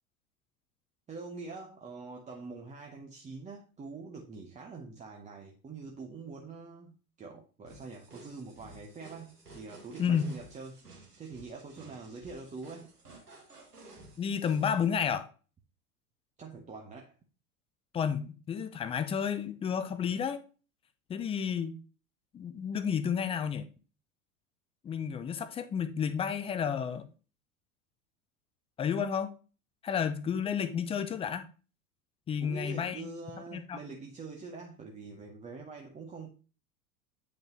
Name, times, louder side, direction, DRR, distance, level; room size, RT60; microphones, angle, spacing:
voice 1, 1.1-10.8 11.2-12.9 16.4-17.2 32.4-36.3, right 4 dB, 15° right, 0.9 m, -45 dB
sound 1, 7.7-14.9, right 2 dB, 85° right, 1.8 m, -54 dB
voice 2, 10.0-10.3 14.2-15.3 17.9-20.4 21.1-21.8 22.3-23.7 24.8-27.1 28.8-29.3 29.8-31.4 32.3-33.1 33.5-33.8, left 7 dB, 15° left, 0.5 m, -31 dB
8.9 x 5.3 x 2.9 m
figure-of-eight pair, 85°, 45 cm